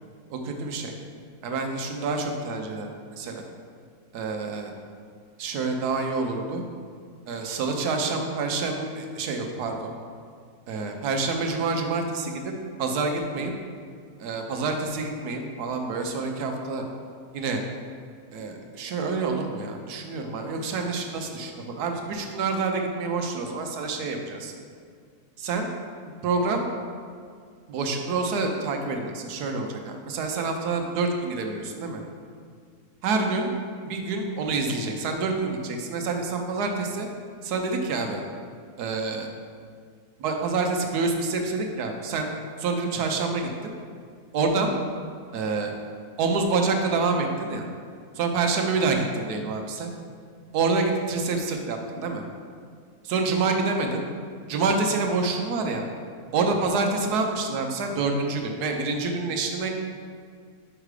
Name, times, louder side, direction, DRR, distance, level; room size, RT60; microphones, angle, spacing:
voice 1, 0.3-0.9 1.4-2.9 3.2-3.5 4.1-4.7 5.4-6.6 7.3-9.9 10.7-12.5 12.8-13.5 14.2-16.9 17.3-17.6 18.3-24.5 25.4-25.7 26.2-26.7 27.7-32.0 33.0-33.5 33.8-37.1 37.4-38.2 38.8-39.3 40.2-42.3 42.6-43.7 44.3-44.7 45.3-45.7 46.2-47.7 48.1-49.9 50.5-52.2 53.0-54.0 54.5-55.8 56.3-59.7, right 3 dB, 80° right, 3 dB, 1.3 m, -27 dB
5.6 x 4.9 x 4.8 m, 2.1 s
omnidirectional pair, 1.7 m